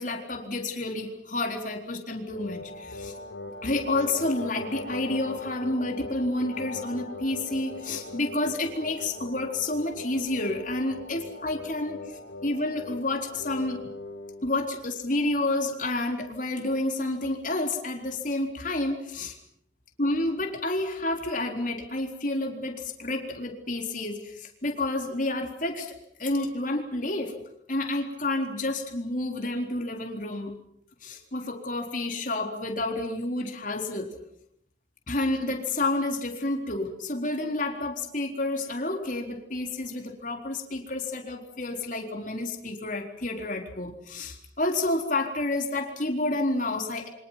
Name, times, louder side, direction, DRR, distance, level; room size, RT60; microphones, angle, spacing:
voice 1, 0.0-3.1 3.6-13.9 14.4-19.4 20.0-27.4 27.7-30.6 31.0-34.2 35.1-47.1, left 2 dB, 45° left, 3 dB, 4.0 m, -30 dB
sound 1, 2.3-14.5, left 2 dB, 85° left, 4.5 m, -40 dB
28.5 x 25.0 x 5.9 m, 0.69 s
head